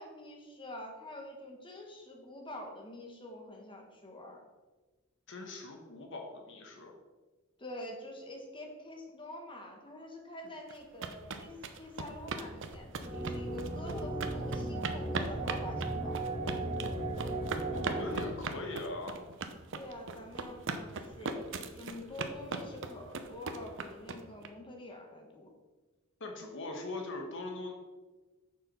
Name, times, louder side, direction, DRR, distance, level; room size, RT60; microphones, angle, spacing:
voice 1, 0.0-4.4 7.6-16.2 18.2-18.4 19.7-25.5, left 1 dB, 25° left, 1 dB, 1.5 m, -46 dB
voice 2, 5.3-6.9 17.7-19.2 26.2-27.7, left 2 dB, 60° left, 3 dB, 1.2 m, -41 dB
sound 1, 10.7-24.5, right 4 dB, 60° right, 0.7 m, -39 dB
sound 2, 13.0-18.2, right 2 dB, 40° right, 2.2 m, -36 dB
6.8 x 6.0 x 5.6 m, 1.2 s
head